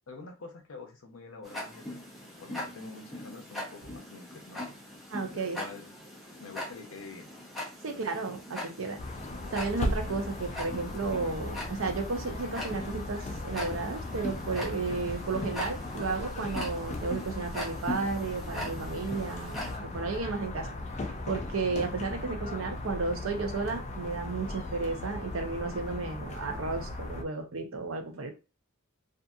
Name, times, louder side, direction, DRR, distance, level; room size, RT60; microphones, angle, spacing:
voice 1, 0.1-2.0 2.4-4.6 5.3-5.9 6.4-7.3 7.9-8.2, left 3 dB, 70° left, 3 dB, 0.7 m, -46 dB
Tick-tock, 1.4-19.8, left 1 dB, ahead, 0.8 m, -41 dB
voice 2, 5.1-5.6 7.8-9.0 9.5-20.7 21.3-28.3, right 4 dB, 70° right, 5 dB, 0.6 m, -33 dB
sound 1, 9.0-27.2, left 1 dB, 35° left, 0.4 m, -37 dB
2.7 x 2.5 x 2.3 m, 0.30 s
head